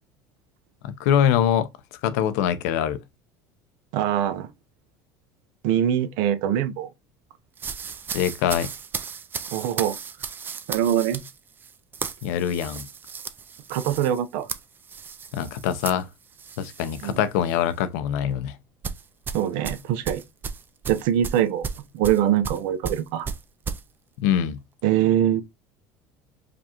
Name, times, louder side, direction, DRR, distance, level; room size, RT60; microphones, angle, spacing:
voice 1, 0.8-1.7 2.0-3.0 8.1-8.7 12.2-12.9 15.3-16.1 16.6-18.5 24.2-24.6, left 9 dB, 85° left, 0.6 m, -23 dB
voice 2, 3.9-4.5 5.6-6.9 9.5-10.0 10.7-11.2 13.7-14.5 17.0-17.2 19.3-20.2 20.9-21.7 21.9-23.3 24.8-25.4, right 10 dB, 75° right, 0.6 m, -23 dB
sound 1, 7.6-17.2 17.5-17.8 18.8-23.8, right 6 dB, 25° right, 0.4 m, -35 dB
5.0 x 2.4 x 2.8 m
cardioid pair, 130°, 8 cm